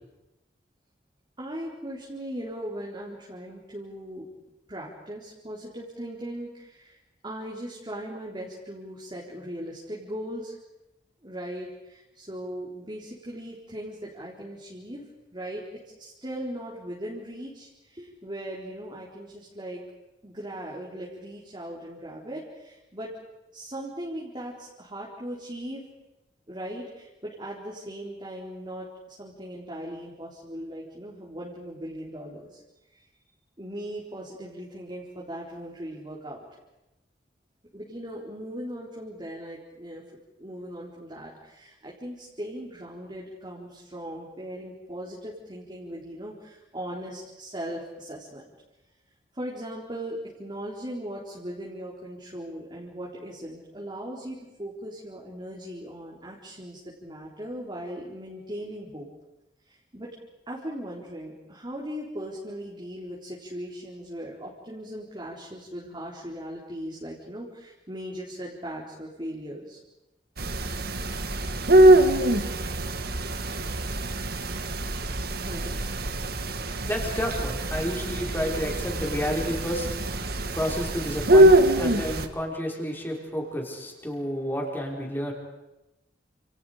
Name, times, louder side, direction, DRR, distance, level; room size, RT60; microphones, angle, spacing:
voice 1, 1.4-4.3 4.7-7.0 7.2-10.6 11.2-15.0 15.3-19.8 20.2-23.2 23.5-25.8 26.5-32.6 32.9-33.0 33.6-36.5 37.7-40.0 40.4-48.5 49.3-59.1 59.7-60.2 60.5-69.8 75.4-75.7, equal, 25° right, -4 dB, 4.1 m, -38 dB
sound 1, 70.4-82.3, right 1 dB, 60° right, 1.8 m, -23 dB
voice 2, 76.3-85.3, equal, 10° left, -1 dB, 5.7 m, -31 dB
29.5 x 28.5 x 5.1 m, 0.97 s
head